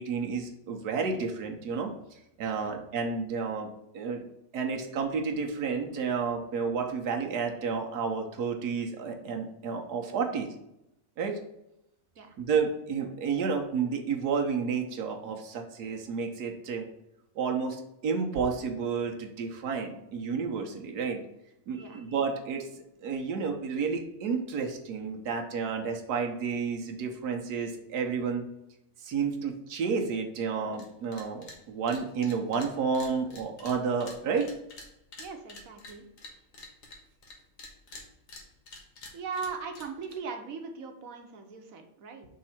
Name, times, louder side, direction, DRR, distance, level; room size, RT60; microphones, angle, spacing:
voice 1, 0.0-1.9 2.4-4.2 4.5-10.5 11.2-11.4 12.4-16.9 17.3-21.2 21.7-22.7 23.0-28.4 29.0-34.5, right 5 dB, 90° right, 3 dB, 1.5 m, -31 dB
sound 1, 30.7-30.9 31.1-31.6 31.9-37.3 37.6-40.2, left 2 dB, 60° left, 1.7 m, -47 dB
voice 2, 35.2-36.1 39.1-42.3, right 5 dB, 65° right, 5 dB, 1.3 m, -39 dB
5.4 x 3.7 x 5.7 m, 0.84 s
omnidirectional pair, 1.6 m